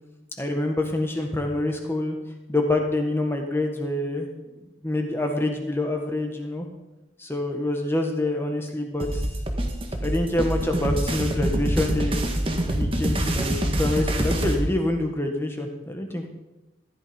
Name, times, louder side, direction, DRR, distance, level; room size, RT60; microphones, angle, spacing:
voice 1, 0.4-2.2 2.5-6.7 7.2-9.2 10.0-12.2 12.7-16.3, left 1 dB, 10° left, 3 dB, 1.5 m, -26 dB
sound 1, 9.0-14.6, right 1 dB, 30° right, 1.5 m, -25 dB
14.5 x 11.0 x 5.3 m, 1.0 s
head